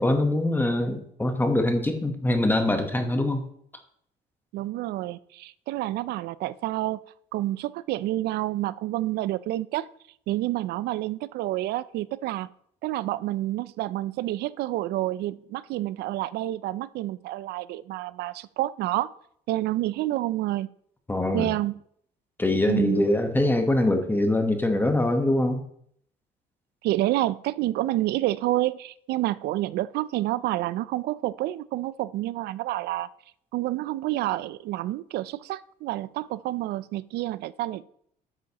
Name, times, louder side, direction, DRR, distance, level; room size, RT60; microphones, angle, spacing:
voice 1, 0.0-3.4 21.1-21.5 22.4-25.6, left 1 dB, 10° left, 6 dB, 1.1 m, -23 dB
voice 2, 4.5-7.0 7.3-9.9 10.3-12.5 12.8-19.1 19.5-20.7 21.3-21.7 22.7-23.1 26.8-33.1 33.5-37.8, right 15 dB, 75° right, 18 dB, 0.4 m, -28 dB
9.7 x 7.7 x 2.9 m, 0.67 s
cardioid pair, 110°, 17 cm